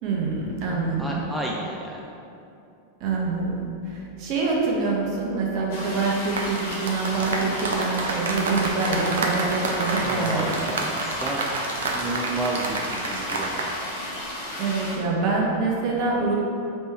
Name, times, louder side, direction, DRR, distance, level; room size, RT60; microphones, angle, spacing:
voice 1, 0.0-1.2 3.0-10.5 14.6-16.3, right 4 dB, 40° right, -3 dB, 0.9 m, -25 dB
voice 2, 1.0-2.0 10.0-11.4 11.9-13.6, right 1 dB, ahead, -3 dB, 0.3 m, -31 dB
sound 1, 5.7-15.0, left 1 dB, 50° left, 1.0 m, -34 dB
sound 2, 6.2-13.7 14.0-14.2, right 3 dB, 65° right, 0.5 m, -29 dB
3.3 x 3.2 x 4.6 m, 2.7 s
figure-of-eight pair, 90°, 0 cm